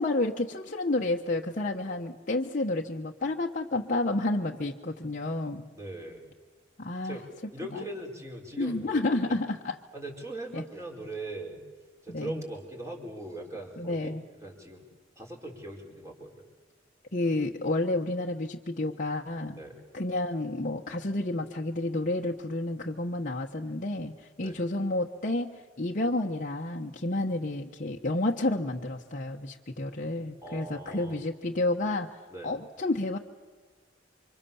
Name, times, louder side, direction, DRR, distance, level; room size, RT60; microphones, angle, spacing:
voice 1, 0.0-5.7 6.8-7.2 7.7-7.8 8.6-9.8 10.5-10.6 12.1-12.4 13.8-14.2 17.1-19.6 19.9-25.5 25.8-32.1 32.4-33.2, left 2 dB, 45° left, 0 dB, 1.1 m, -30 dB
voice 2, 5.7-6.2 7.0-7.2 7.5-9.4 9.9-11.6 12.0-14.2 14.4-14.8 15.2-16.4 19.6-19.8 24.4-24.6 30.4-31.2 32.3-32.6, right 1 dB, 15° right, 1 dB, 4.9 m, -40 dB
28.5 x 25.5 x 7.1 m, 1.4 s
head